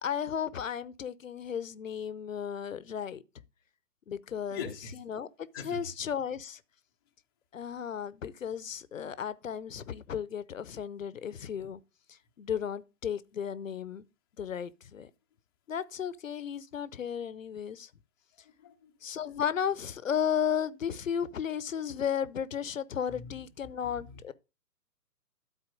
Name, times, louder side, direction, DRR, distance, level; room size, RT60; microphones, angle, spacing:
voice 1, 0.0-3.2 4.1-4.7 5.1-6.6 7.5-11.8 12.4-14.0 14.4-15.1 15.7-17.9 19.0-24.3, left 8 dB, 55° left, 0.8 m, -34 dB
voice 2, 4.5-5.0 5.5-5.9 18.4-18.9 23.1-24.2, left 6 dB, 15° left, 0.6 m, -43 dB
12.5 x 4.2 x 5.2 m
figure-of-eight pair, 135°, 48 cm